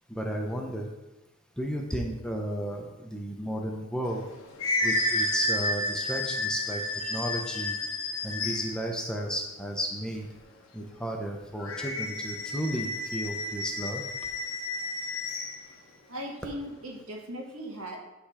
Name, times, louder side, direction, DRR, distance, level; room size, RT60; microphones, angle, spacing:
voice 1, 0.1-0.9 1.6-4.2 4.8-7.8 8.2-10.3 10.7-14.0, equal, 5° left, 1 dB, 0.8 m, -33 dB
sound 1, 4.1-8.9 11.6-15.6, left 1 dB, 70° left, 1.0 m, -31 dB
voice 2, 16.1-18.0, equal, 80° right, 0 dB, 1.6 m, -38 dB
10.0 x 3.5 x 4.9 m, 1.0 s
head